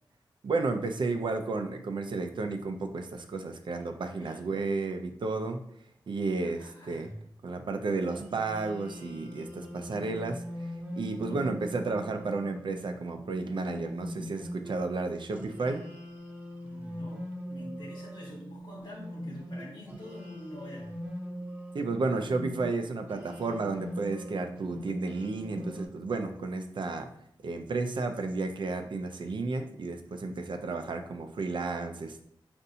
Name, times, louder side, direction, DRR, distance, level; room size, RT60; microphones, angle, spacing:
voice 1, 0.4-5.6 6.1-7.1 7.4-10.4 11.0-15.8 21.7-27.1 27.4-32.2, right 3 dB, 65° right, 6 dB, 0.5 m, -32 dB
voice 2, 6.3-7.2 11.2-11.5 16.6-21.0, left 1 dB, 55° left, -6 dB, 1.0 m, -46 dB
sound 1, 8.1-14.7 15.3-22.7 23.1-25.9, equal, 20° right, 0.8 m, -41 dB
5.4 x 2.6 x 2.7 m, 0.71 s
wide cardioid pair, 110°, 9 cm